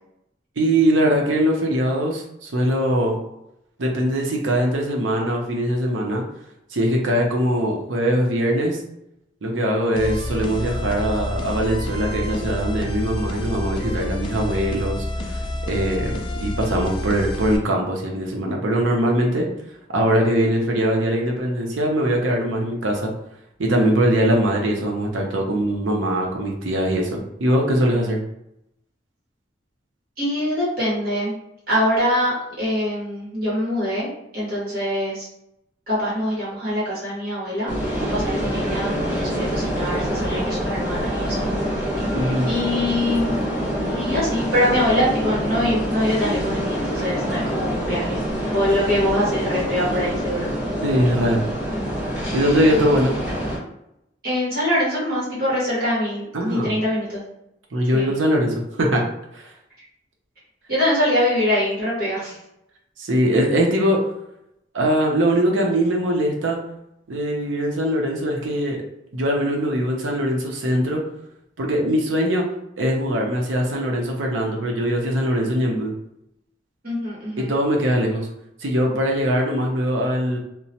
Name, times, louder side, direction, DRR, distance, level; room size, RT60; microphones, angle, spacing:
voice 1, 0.6-3.2 3.8-6.2 6.7-8.8 9.4-19.5 19.9-23.1 23.6-28.2 42.1-42.5 50.8-51.4 52.3-53.2 56.3-56.7 57.7-59.0 59.3-59.5 63.0-64.0 64.7-66.6 67.1-68.8 69.1-71.0 71.6-72.5 72.8-75.9 77.4-78.3 78.6-80.4, equal, 90° right, 0 dB, 0.7 m, -21 dB
sound 1, 9.9-17.6, left 1 dB, 25° left, 0.3 m, -28 dB
voice 2, 30.2-31.3 31.7-34.1 34.3-35.3 35.9-41.5 42.0-43.3 43.9-50.5 54.2-57.2 57.9-58.1 60.7-62.4 76.8-77.5, left 1 dB, 55° right, -8 dB, 1.5 m, -24 dB
sound 2, 37.7-53.6, equal, 5° right, 1.1 m, -26 dB
2.9 x 2.1 x 2.8 m, 0.82 s
head